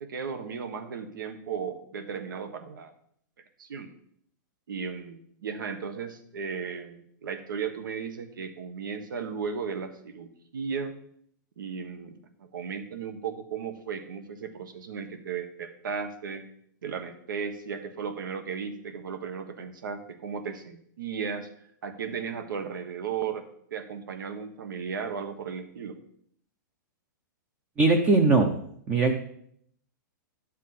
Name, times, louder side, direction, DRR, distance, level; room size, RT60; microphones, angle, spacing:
voice 1, 0.0-2.9 3.6-3.9 4.7-10.9 11.6-16.4 16.8-21.5 21.8-26.0, right 6 dB, 90° right, 9 dB, 1.4 m, -35 dB
voice 2, 27.8-28.5 28.9-29.2, right 3 dB, 10° right, 6 dB, 0.5 m, -20 dB
11.5 x 7.3 x 4.2 m, 0.67 s
supercardioid pair, 175°, 11 cm